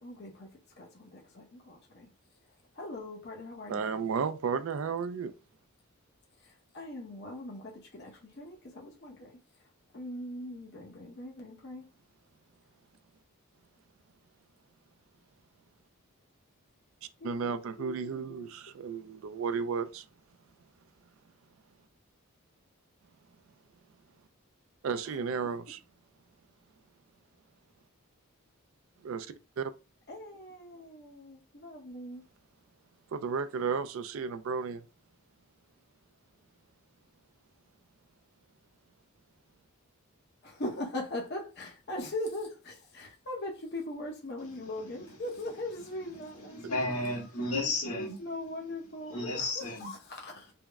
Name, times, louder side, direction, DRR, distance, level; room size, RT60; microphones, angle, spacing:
voice 1, 0.0-2.1 2.7-3.8 6.4-9.3 9.9-11.9 17.2-18.5 25.1-25.2 30.1-32.2 40.4-46.8 47.8-50.5, left 1 dB, 45° left, 0.8 m, -40 dB
voice 2, 3.7-5.3 17.2-20.0 24.8-25.8 29.0-29.7 33.1-34.8, right 5 dB, 65° right, 0.3 m, -33 dB
voice 3, 46.5-48.2 49.1-49.9, left 2 dB, 80° left, 1.5 m, -32 dB
3.4 x 2.0 x 3.4 m
head